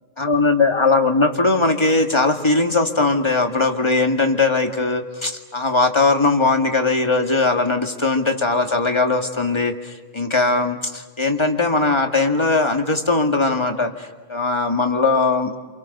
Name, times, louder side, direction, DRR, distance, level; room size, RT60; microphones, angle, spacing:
voice 1, 0.2-15.6, left 3 dB, 25° left, 4 dB, 2.2 m, -19 dB
29.0 x 27.5 x 6.8 m, 1.3 s
omnidirectional pair, 1.1 m